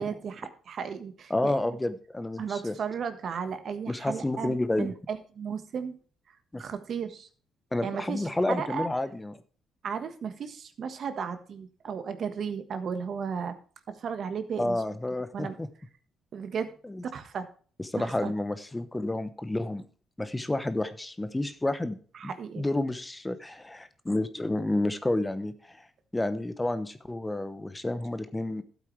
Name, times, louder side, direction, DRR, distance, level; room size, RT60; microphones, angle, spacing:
voice 1, 0.0-1.6 2.4-6.0 6.6-7.3 7.8-8.9 9.8-13.5 13.9-14.8 15.3-15.6 16.3-16.7 17.0-17.5 18.0-18.3 22.1-22.7, right 6 dB, 60° right, 9 dB, 1.4 m, -35 dB
voice 2, 1.3-2.8 3.9-4.9 6.5-6.6 7.7-9.4 14.6-15.7 16.8-17.0 17.8-19.8 20.2-22.0 22.2-25.9 26.1-28.6, left 2 dB, 15° left, 12 dB, 0.9 m, -30 dB
12.5 x 8.3 x 3.3 m, 0.41 s
cardioid pair, 90°, 0 cm